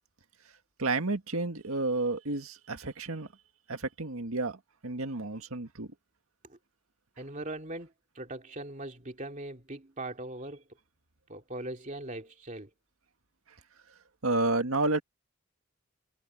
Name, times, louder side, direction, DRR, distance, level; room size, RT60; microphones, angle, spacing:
voice 1, 0.8-3.3 3.7-5.9 14.2-15.0, right 2 dB, 75° right, 1.9 m, -31 dB
voice 2, 7.2-10.6 11.3-12.7, right 1 dB, 35° right, 2.8 m, -40 dB
head